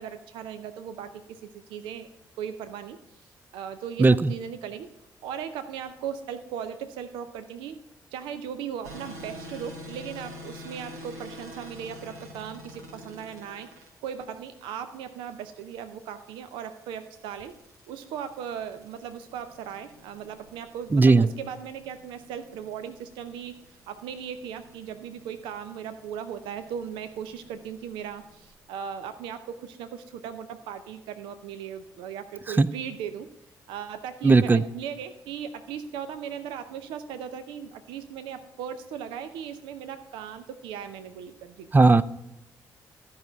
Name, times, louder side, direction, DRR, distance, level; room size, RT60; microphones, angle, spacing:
voice 1, 0.0-2.1 2.4-3.0 3.5-4.9 5.2-7.8 8.1-17.5 17.9-33.3 33.7-41.7, right 8 dB, 70° right, 10 dB, 0.5 m, -38 dB
voice 2, 4.0-4.3 20.9-21.3 32.6-32.7 34.2-34.6 41.7-42.0, right 3 dB, 20° right, 16 dB, 0.5 m, -17 dB
sound 1, 8.8-28.5, left 1 dB, 85° right, 1.1 m, -48 dB
13.5 x 5.7 x 5.0 m, 0.88 s
figure-of-eight pair, 40°, 9 cm